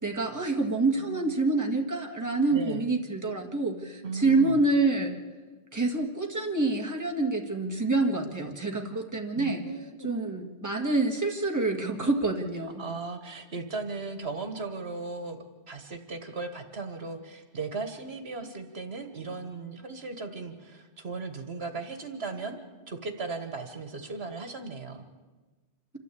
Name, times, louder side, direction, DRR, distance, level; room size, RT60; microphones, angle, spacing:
voice 1, 0.0-5.2 5.7-9.6 10.0-12.8, right 3 dB, 15° right, 1 dB, 1.9 m, -27 dB
voice 2, 2.5-2.9 4.0-4.6 8.9-9.0 9.4-10.1 12.8-22.6 22.9-25.1, right 3 dB, 70° right, 7 dB, 1.8 m, -37 dB
26.5 x 13.0 x 8.5 m, 1.3 s
omnidirectional pair, 1.1 m